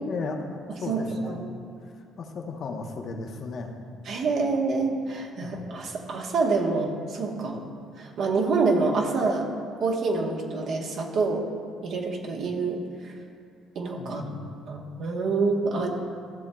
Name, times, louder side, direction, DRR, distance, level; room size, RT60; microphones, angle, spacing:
voice 1, 0.0-1.5 1.8-3.8 5.4-5.6 14.0-14.5, left 4 dB, 45° left, 3 dB, 0.7 m, -36 dB
voice 2, 0.9-1.4 4.1-7.6 8.0-9.5 9.8-11.4 11.8-13.1 13.7-14.2 14.7-15.9, right 3 dB, 50° right, 0 dB, 1.1 m, -27 dB
13.5 x 7.1 x 2.3 m, 2.3 s
cardioid pair, 145°, 0 cm